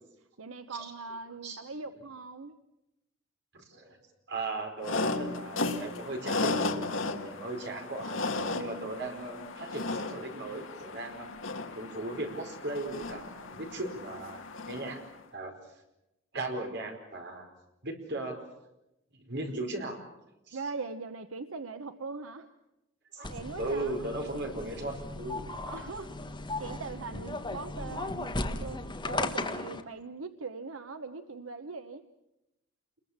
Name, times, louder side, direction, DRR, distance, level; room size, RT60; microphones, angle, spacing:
voice 1, 0.4-2.6 8.5-8.8 20.5-22.5 23.3-24.0 25.6-26.2 26.6-32.0, right 4 dB, 85° right, 8 dB, 1.0 m, -41 dB
voice 2, 3.5-4.0 4.3-8.2 8.6-11.3 11.7-15.0 15.3-15.5 16.3-17.5 17.8-18.5 19.2-20.0 20.5-20.6 23.1-23.3 23.6-25.6, right 2 dB, 60° right, 3 dB, 4.9 m, -37 dB
sound 1, 4.8-15.1, left 3 dB, 70° left, 1.9 m, -35 dB
sound 2, 23.2-29.8, left 2 dB, 25° left, 1.6 m, -36 dB
28.5 x 22.0 x 7.4 m, 0.92 s
head